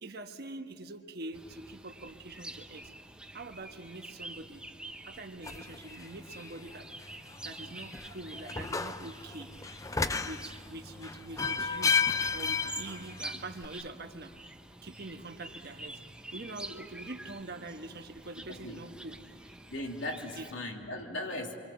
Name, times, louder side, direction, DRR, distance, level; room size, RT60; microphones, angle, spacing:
voice 1, 0.0-2.9 3.3-4.6 5.0-6.9 7.4-9.8 10.2-11.9 12.3-14.6 14.8-16.0 16.3-19.5 20.3-20.5, right 2 dB, 55° right, 6 dB, 1.3 m, -44 dB
sound 1, 1.3-20.5, right 1 dB, 5° right, 0.8 m, -48 dB
sound 2, 5.4-13.7, left 5 dB, 15° left, 0.5 m, -34 dB
voice 2, 18.5-18.8 19.7-21.5, left 1 dB, 85° left, 1 dB, 2.9 m, -38 dB
28.0 x 23.5 x 7.1 m, 2.3 s
head